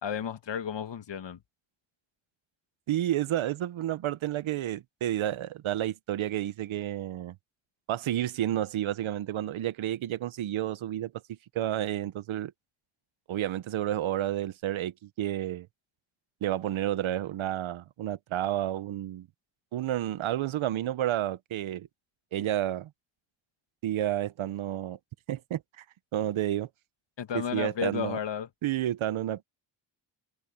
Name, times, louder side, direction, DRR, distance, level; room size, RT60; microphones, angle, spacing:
voice 1, 0.0-1.4 27.2-28.5, left 8 dB, 65° left, 1.9 m, -33 dB
voice 2, 2.9-7.3 7.9-11.1 11.5-12.5 13.3-15.7 16.4-19.3 19.7-21.9 22.3-22.9 23.8-25.0 25.3-25.8 26.1-26.7 27.3-28.2 28.6-29.4, right 12 dB, 80° right, 1.2 m, -30 dB
supercardioid pair, 45°, 47 cm